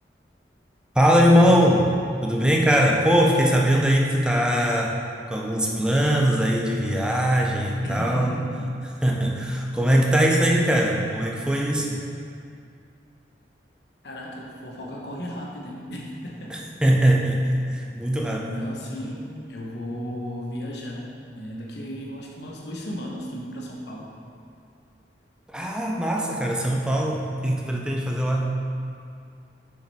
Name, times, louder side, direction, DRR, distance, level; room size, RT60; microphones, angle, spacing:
voice 1, 1.0-1.9 2.2-5.0 5.3-8.4 9.0-12.0 16.5-18.5 25.5-28.5, equal, 5° right, -1 dB, 0.5 m, -21 dB
voice 2, 7.8-8.8 14.0-16.7 18.4-21.1 21.3-24.1, equal, 70° left, -2 dB, 1.0 m, -35 dB
6.2 x 5.1 x 4.1 m, 2.4 s
head